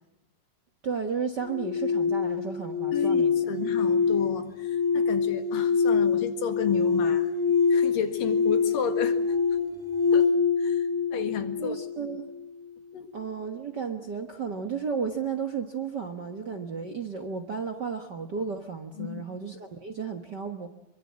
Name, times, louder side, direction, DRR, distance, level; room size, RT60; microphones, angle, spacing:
voice 1, 0.8-3.3 11.6-12.3 13.1-20.7, right 6 dB, 50° right, 8 dB, 1.3 m, -33 dB
sound 1, 1.4-12.4, left 5 dB, 5° left, 3.9 m, -25 dB
voice 2, 2.9-7.3 7.7-9.2 10.1-10.3 10.6-11.8 12.9-13.1 19.0-19.2, left 8 dB, 80° left, 7 dB, 3.6 m, -33 dB
27.0 x 23.5 x 7.5 m, 0.84 s
omnidirectional pair, 3.8 m